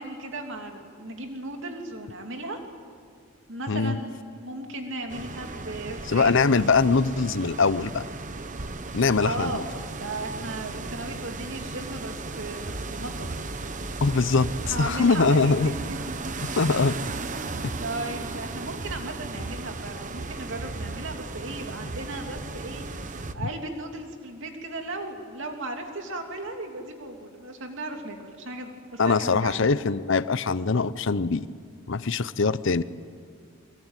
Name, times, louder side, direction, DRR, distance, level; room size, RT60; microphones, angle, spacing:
voice 1, 0.0-2.6 3.5-6.9 8.8-9.7 10.0-13.4 14.6-16.1 16.4-16.7 17.8-29.7, right 2 dB, 65° right, 3 dB, 2.8 m, -36 dB
voice 2, 3.7-4.0 6.1-8.1 8.9-9.6 14.0-15.7 16.4-17.0 17.6-17.7 29.0-31.5 31.9-32.8, left 4 dB, 60° left, 16 dB, 0.7 m, -22 dB
sound 1, 5.1-23.3, right 3 dB, 40° right, 1.0 m, -35 dB
24.0 x 22.0 x 9.2 m, 2.2 s
head